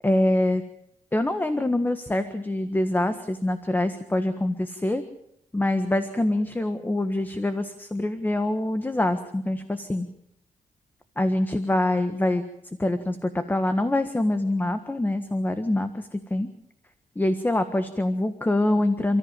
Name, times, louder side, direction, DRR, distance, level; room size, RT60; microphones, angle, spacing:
voice 1, 0.0-0.6 1.1-5.0 5.5-10.1 11.2-12.4 12.8-16.5 17.1-19.2, left 1 dB, 15° left, 9 dB, 1.5 m, -25 dB
29.5 x 14.5 x 7.5 m, 0.78 s
cardioid pair, 100°, 13 cm